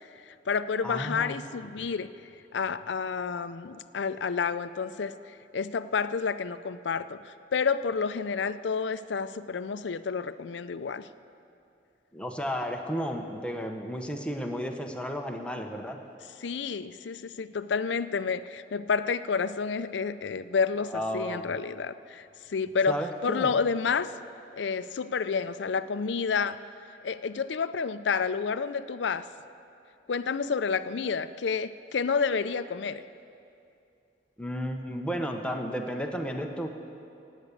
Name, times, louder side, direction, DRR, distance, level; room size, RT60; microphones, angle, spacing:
voice 1, 0.3-2.1 2.5-5.2 5.5-11.1 16.4-23.0 23.2-24.1 24.5-26.6 27.0-29.3 30.1-33.0, left 5 dB, 75° left, 13 dB, 0.5 m, -29 dB
voice 2, 0.8-1.4 12.1-16.0 20.9-21.5 22.9-23.5 34.4-36.7, equal, 5° left, 3 dB, 1.0 m, -33 dB
18.0 x 8.3 x 8.4 m, 2.7 s
head